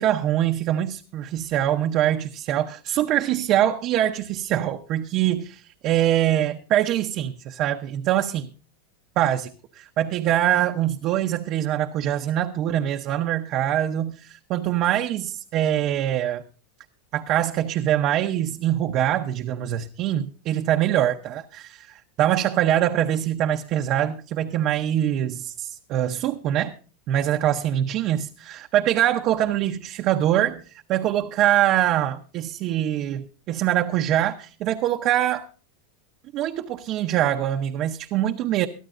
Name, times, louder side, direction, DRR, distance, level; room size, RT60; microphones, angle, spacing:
voice 1, 0.0-8.5 9.2-16.4 17.1-21.8 22.2-26.7 27.1-30.6 30.9-35.5 36.3-38.7, right 12 dB, 40° right, 0.7 m, -23 dB
23.0 x 12.5 x 2.5 m
supercardioid pair, 150°, 0 cm